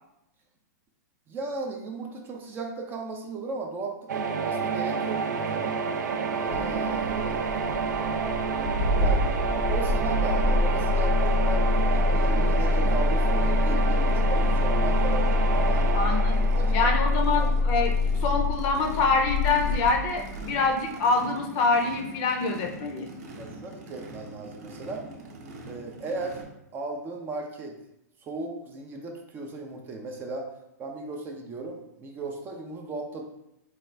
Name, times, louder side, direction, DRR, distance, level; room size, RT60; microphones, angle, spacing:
voice 1, 1.3-5.7 6.4-7.6 8.9-9.3 9.6-15.9 16.5-17.7 23.4-25.1 25.7-26.4 26.7-27.8 28.2-30.5 30.8-33.2, right 3 dB, 20° right, 2 dB, 0.4 m, -36 dB
sound 1, 4.1-17.9, right 5 dB, 85° right, 0.4 m, -29 dB
Engine starting, 6.5-20.6, left 2 dB, 85° left, 0.9 m, -25 dB
Race car auto racing / Idling / Accelerating revving vroom, 11.9-26.4, right 2 dB, 60° right, 0.7 m, -44 dB
voice 2, 15.9-17.9 18.2-23.1, left 4 dB, 35° left, 3 dB, 0.6 m, -25 dB
4.2 x 2.3 x 3.2 m, 0.86 s
hypercardioid pair, 140°, 10 cm